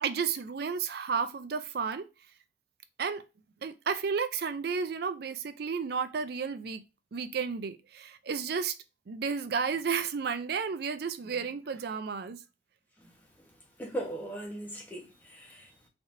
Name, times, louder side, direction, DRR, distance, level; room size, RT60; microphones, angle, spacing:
voice 1, 0.0-2.1 3.0-3.2 3.6-6.8 7.1-8.7 9.1-12.4, right 6 dB, 55° right, 0.4 m, -32 dB
voice 2, 13.8-15.9, right 1 dB, 10° left, 1.0 m, -39 dB
3.9 x 3.3 x 2.6 m
head